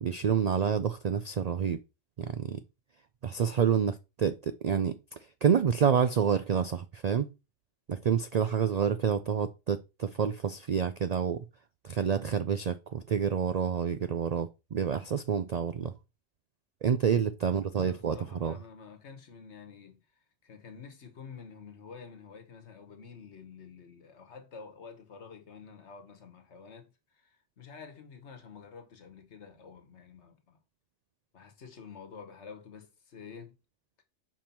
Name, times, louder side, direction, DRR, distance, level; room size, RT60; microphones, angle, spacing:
voice 1, 0.0-1.8 2.2-2.6 3.2-7.3 7.9-11.4 11.8-15.9 16.8-18.6, right 7 dB, 65° right, 0.4 m, -28 dB
voice 2, 17.5-20.0 20.4-30.6 31.3-33.6, left 5 dB, 70° left, 1.5 m, -49 dB
5.5 x 5.0 x 4.4 m
omnidirectional pair, 1.2 m